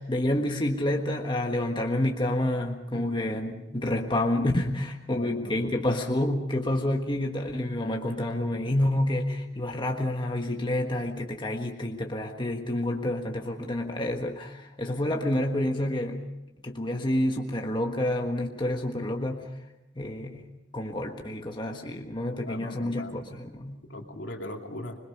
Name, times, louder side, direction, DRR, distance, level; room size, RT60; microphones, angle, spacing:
voice 1, 0.0-16.2 16.6-19.5 19.9-23.8, left 1 dB, 25° left, 2 dB, 1.5 m, -29 dB
voice 2, 5.1-5.8 22.5-23.2 23.9-25.0, left 1 dB, 70° left, 2 dB, 2.8 m, -39 dB
26.0 x 21.5 x 5.5 m, 0.91 s
head